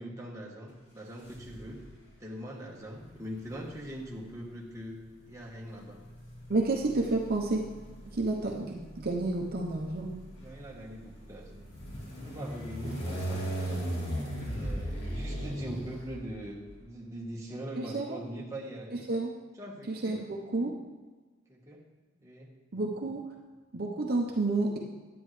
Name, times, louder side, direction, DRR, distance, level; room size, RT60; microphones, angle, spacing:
voice 1, 0.0-1.8 2.2-5.0 5.3-6.0 10.4-11.6 12.2-13.5 14.4-19.1 19.6-20.2 21.5-21.8 22.2-22.5, right 1 dB, 15° right, -2 dB, 1.2 m, -42 dB
sound 1, 1.2-1.9 3.0-16.7, right 1 dB, 55° left, 3.0 m, -39 dB
voice 2, 6.5-7.6 8.1-10.1 12.8-13.0 17.8-18.2 18.9-19.3 19.9-20.7 22.7-23.2 23.7-24.8, right 2 dB, 50° right, 0 dB, 0.8 m, -30 dB
9.9 x 8.8 x 3.2 m, 1.3 s
head